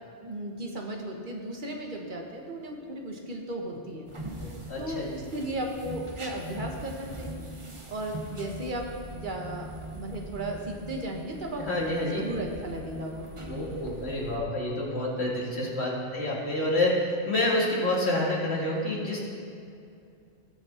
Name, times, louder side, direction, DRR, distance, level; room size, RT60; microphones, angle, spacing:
voice 1, 0.2-4.1 4.4-7.4 7.9-13.3, right 1 dB, 45° right, 1 dB, 1.5 m, -35 dB
sound 1, 4.1-14.4, right 1 dB, 25° right, 1.0 m, -42 dB
voice 2, 4.4-5.1 11.6-12.3 13.5-19.2, left 1 dB, 60° left, -4 dB, 2.4 m, -28 dB
18.5 x 6.4 x 4.4 m, 2.4 s
omnidirectional pair, 1.2 m